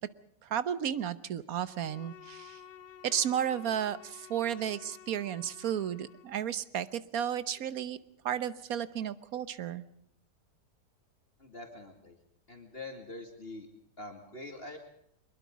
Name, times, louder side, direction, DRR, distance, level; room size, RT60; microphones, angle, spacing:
voice 1, 0.4-2.6 3.0-8.0 8.2-9.8, right 9 dB, 60° right, 15 dB, 1.3 m, -33 dB
Bowed string instrument, 1.6-6.4, left 9 dB, 70° left, 1.5 m, -52 dB
voice 2, 11.4-12.2 12.5-13.7 14.0-14.8, left 2 dB, 35° left, 3 dB, 2.6 m, -44 dB
23.5 x 21.5 x 5.2 m, 0.72 s
omnidirectional pair, 1.8 m